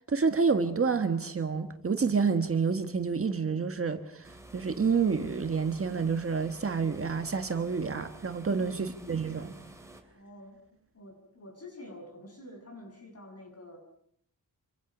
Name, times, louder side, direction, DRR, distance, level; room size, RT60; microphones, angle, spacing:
voice 1, 0.1-9.6, right 5 dB, 40° right, 7 dB, 1.6 m, -28 dB
sound 1, 4.2-10.0, right 1 dB, 10° right, 3.3 m, -51 dB
voice 2, 8.5-8.9 10.1-13.8, left 1 dB, 45° left, 3 dB, 7.5 m, -48 dB
27.0 x 25.0 x 6.2 m, 0.69 s
wide cardioid pair, 175°, 35 cm